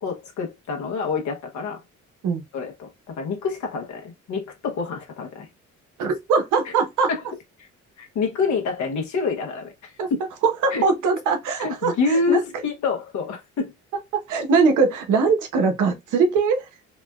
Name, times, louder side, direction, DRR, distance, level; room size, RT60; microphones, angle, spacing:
voice 1, 0.0-1.8 2.5-5.5 6.6-6.7 7.1-7.2 8.0-10.2 10.7-10.8 11.6-13.7, left 4 dB, 70° left, 0.9 m, -27 dB
voice 2, 6.0-7.1 10.0-10.1 10.4-12.4 14.1-16.7, right 4 dB, 90° right, 1.0 m, -21 dB
4.1 x 2.1 x 2.3 m
cardioid pair, 90°, 30 cm